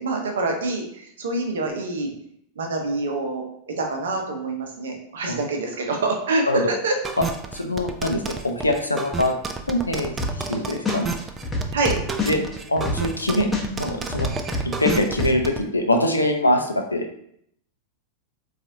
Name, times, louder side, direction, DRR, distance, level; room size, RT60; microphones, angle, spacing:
voice 1, 0.0-2.1 2.6-7.0 11.7-12.0, right 2 dB, 65° right, 2 dB, 0.6 m, -26 dB
sound 1, 7.0-15.6, right 5 dB, 20° right, 0.3 m, -31 dB
voice 2, 7.5-9.3 9.7-10.1 10.5-11.1 12.3-12.4 12.7-13.5 13.8-14.3 14.8-17.1, left 1 dB, 80° left, 4 dB, 0.4 m, -23 dB
sound 2, 10.2-10.5 10.8-13.2 13.5-15.3, left 3 dB, 10° left, 0.8 m, -26 dB
3.9 x 2.4 x 2.7 m, 0.70 s
figure-of-eight pair, 90°, 0 cm